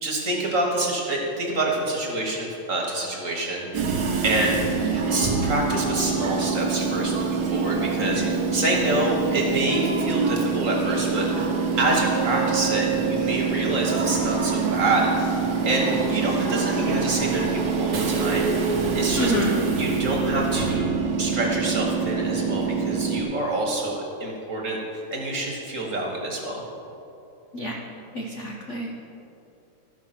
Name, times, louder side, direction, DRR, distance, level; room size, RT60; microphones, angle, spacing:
voice 1, 0.0-11.5 11.8-19.3 19.7-20.9 21.2-26.6, right 2 dB, 40° right, -1 dB, 1.6 m, -27 dB
Train / Subway metro underground, 3.7-23.2, right 5 dB, 55° right, 1.3 m, -25 dB
voice 2, 19.1-19.6 27.5-27.8 28.1-28.9, equal, 60° left, 0 dB, 0.7 m, -28 dB
13.5 x 5.9 x 5.9 m, 2.8 s
omnidirectional pair, 2.4 m